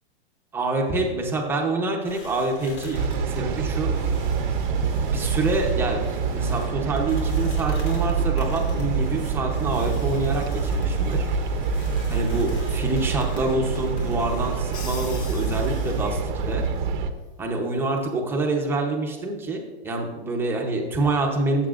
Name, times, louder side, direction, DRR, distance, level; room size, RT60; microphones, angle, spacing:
voice 1, 0.5-3.9 5.1-11.3 12.1-16.6 17.4-21.7, right 2 dB, 5° right, 0 dB, 0.8 m, -26 dB
sound 1, 2.0-16.1, left 2 dB, 80° left, 2.9 m, -41 dB
sound 2, 2.9-17.1, right 5 dB, 45° right, 0.7 m, -26 dB
Crash cymbal, 14.7-16.4, left 5 dB, 15° left, 0.4 m, -41 dB
14.5 x 7.3 x 2.5 m, 1.3 s
hypercardioid pair, 155°, 33 cm